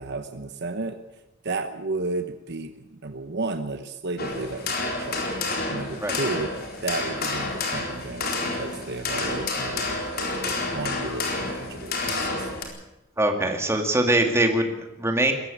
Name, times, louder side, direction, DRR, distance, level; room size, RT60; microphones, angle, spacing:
voice 1, 0.0-5.2 5.7-6.5 6.8-12.5, right 3 dB, 55° right, 9 dB, 1.1 m, -33 dB
sound 1, 4.2-12.6, left 3 dB, 50° left, 4.1 m, -29 dB
voice 2, 13.2-15.3, right 1 dB, 15° right, 4 dB, 2.3 m, -22 dB
21.5 x 14.5 x 8.6 m, 0.95 s
head